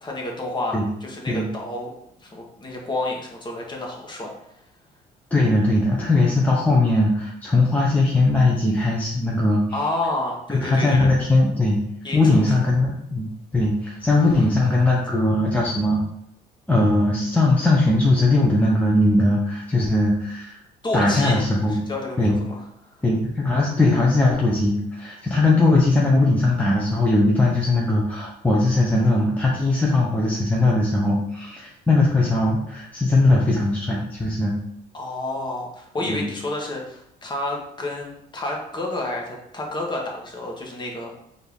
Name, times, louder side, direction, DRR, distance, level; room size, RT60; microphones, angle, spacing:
voice 1, 0.0-1.9 2.2-4.3 9.7-11.1 12.0-12.5 20.8-22.6 34.9-41.1, left 2 dB, 25° left, 0 dB, 1.1 m, -30 dB
voice 2, 5.3-9.8 10.5-11.8 12.1-13.3 13.5-16.0 16.7-20.6 20.9-21.8 22.2-22.4 23.0-34.6 36.1-36.3, left 2 dB, 10° left, -4 dB, 0.6 m, -19 dB
4.3 x 2.7 x 3.5 m, 0.76 s
cardioid pair, 110°, 17 cm